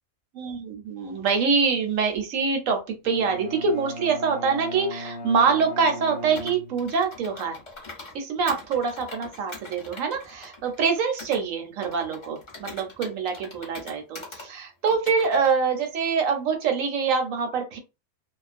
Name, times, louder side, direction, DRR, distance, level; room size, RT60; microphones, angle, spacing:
voice 1, 0.4-7.6 8.1-17.8, right 5 dB, 70° right, 4 dB, 1.0 m, -25 dB
Bowed string instrument, 3.0-7.2, equal, 70° left, 0.9 m, -38 dB
Computer keyboard, 6.3-8.2 8.5-11.4 11.8-14.5 14.9-15.5, left 3 dB, 30° left, 0.5 m, -42 dB
2.4 x 2.1 x 2.4 m, 0.27 s
omnidirectional pair, 1.5 m